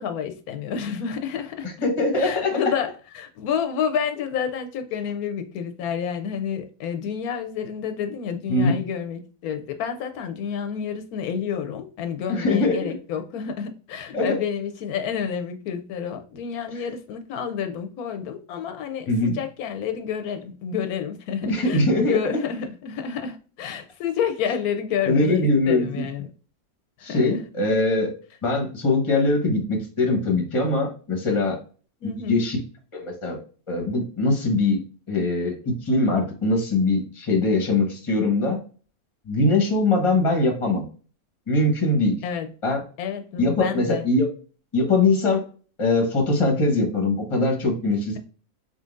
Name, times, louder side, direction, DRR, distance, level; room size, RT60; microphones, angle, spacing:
voice 1, 0.0-1.9 2.1-26.3 27.0-27.4 32.0-32.4 42.2-42.5 43.0-44.1, left 7 dB, 85° left, 1.1 m, -29 dB
voice 2, 1.8-2.6 8.5-8.7 12.4-12.7 14.1-14.4 19.1-19.4 21.4-22.2 25.1-26.0 27.0-28.1 28.4-31.6 32.0-32.6 32.9-33.4 33.7-34.8 35.1-38.6 39.3-40.8 41.5-42.2 42.6-42.8 43.4-44.3 44.7-45.4 45.8-48.2, left 2 dB, 25° left, 1.0 m, -22 dB
4.0 x 3.8 x 2.4 m
omnidirectional pair, 1.6 m